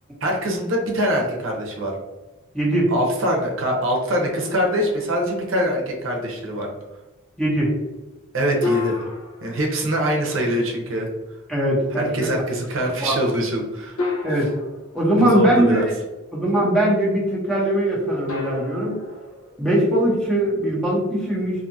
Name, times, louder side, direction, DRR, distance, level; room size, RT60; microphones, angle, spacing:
voice 1, 0.2-1.9 2.9-6.7 8.3-9.1 9.4-11.1 12.0-14.0 15.2-15.9, equal, 65° right, 0 dB, 0.6 m, -23 dB
voice 2, 2.5-2.9 7.4-7.7 11.5-12.3 13.0-13.2 14.2-14.5 14.9-15.9 16.3-18.9 19.6-21.7, right 1 dB, 5° left, -6 dB, 0.7 m, -20 dB
sound 1, 4.4-5.8 8.6-10.6 12.3-12.4 14.0-15.8 18.3-20.3, left 3 dB, 80° left, 0.8 m, -32 dB
2.6 x 2.4 x 2.6 m, 1.1 s
head